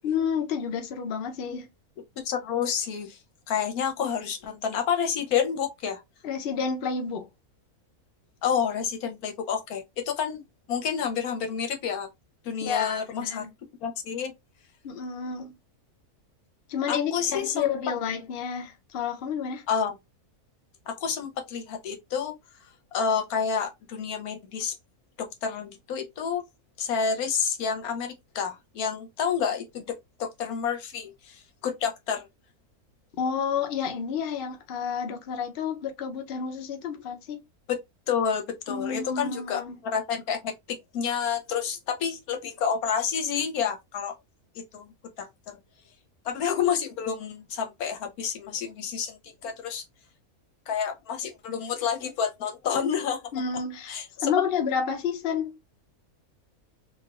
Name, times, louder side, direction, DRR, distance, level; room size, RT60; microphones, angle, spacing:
voice 1, 0.0-1.7 6.2-7.3 12.6-13.5 14.8-15.5 16.7-19.6 33.2-37.4 38.7-39.8 53.3-55.6, left 6 dB, 50° left, 0.7 m, -30 dB
voice 2, 2.2-3.2 3.5-6.0 8.4-12.1 12.4-13.5 13.8-14.3 16.9-17.7 19.7-19.9 20.9-22.4 22.9-24.7 25.2-26.4 26.8-32.3 37.7-44.2 44.5-45.6 46.2-49.8 50.7-53.2 53.9-54.3, left 7 dB, 75° left, 1.2 m, -29 dB
3.2 x 2.5 x 2.4 m
omnidirectional pair, 1.6 m